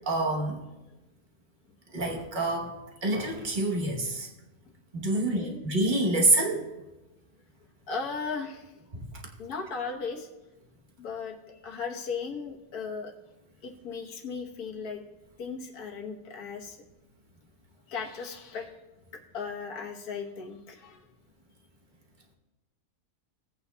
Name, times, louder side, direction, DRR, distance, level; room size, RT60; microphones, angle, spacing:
voice 1, 0.1-0.6 1.9-2.7 3.0-4.3 4.9-6.7, right 2 dB, 35° right, 1 dB, 1.1 m, -26 dB
voice 2, 5.1-5.6 7.9-8.7 9.4-10.3 11.0-13.1 13.6-15.0 15.4-16.8 17.9-18.7 19.1-21.1, left 5 dB, 75° left, 2 dB, 1.6 m, -37 dB
18.0 x 8.3 x 2.3 m, 1.1 s
omnidirectional pair, 1.6 m